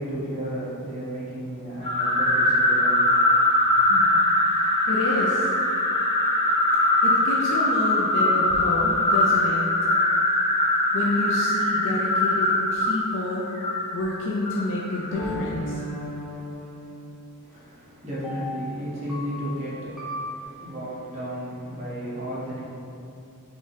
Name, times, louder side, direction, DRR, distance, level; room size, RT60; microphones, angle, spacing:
voice 1, 0.0-3.1 17.4-22.6, right 1 dB, 30° right, -9 dB, 1.3 m, -33 dB
sound 1, 1.8-15.2, left 1 dB, 25° left, 1.3 m, -22 dB
voice 2, 4.9-5.5 6.7-9.6 10.9-13.5 13.9-15.8, left 2 dB, 60° left, -4 dB, 0.4 m, -29 dB
sound 2, 15.1-17.4 18.2-20.4, left 1 dB, ahead, 0.6 m, -36 dB
3.6 x 3.0 x 4.1 m, 2.7 s
head